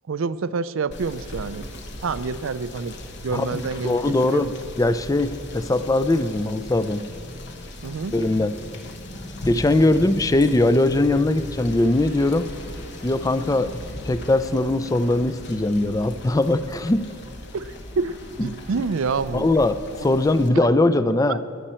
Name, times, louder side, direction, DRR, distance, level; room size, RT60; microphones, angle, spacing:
voice 1, 0.1-1.6 2.0-3.0 3.2-4.5 7.8-8.1 17.5-19.5 20.5-20.6 21.3-21.4, right 4 dB, 80° right, 15 dB, 0.5 m, -27 dB
Rain / Motor vehicle (road), 0.9-20.5, left 1 dB, 55° left, 1.2 m, -37 dB
voice 2, 3.3-4.5 4.8-7.1 8.1-8.6 9.5-12.5 13.0-13.7 14.0-17.1 18.4-18.5 19.3-21.4, left 2 dB, 15° left, 13 dB, 0.4 m, -21 dB
20.5 x 10.0 x 4.4 m, 2.5 s
head